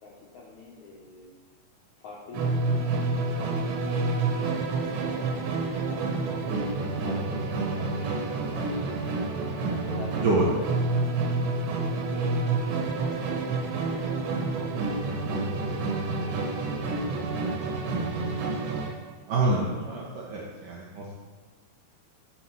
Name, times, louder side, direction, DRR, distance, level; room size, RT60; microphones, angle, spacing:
voice 1, 0.0-1.4 2.0-4.6 4.8-8.1 8.3-8.9 9.5-11.3 11.8-14.7 15.2-15.8 16.1-17.9, left 3 dB, 75° left, -4 dB, 1.7 m, -46 dB
Musical instrument, 2.3-19.0, right 3 dB, 85° right, 3.6 m, -28 dB
voice 2, 19.3-21.1, right 2 dB, 70° right, -3 dB, 2.1 m, -26 dB
10.5 x 5.8 x 4.7 m, 1.4 s
omnidirectional pair, 5.0 m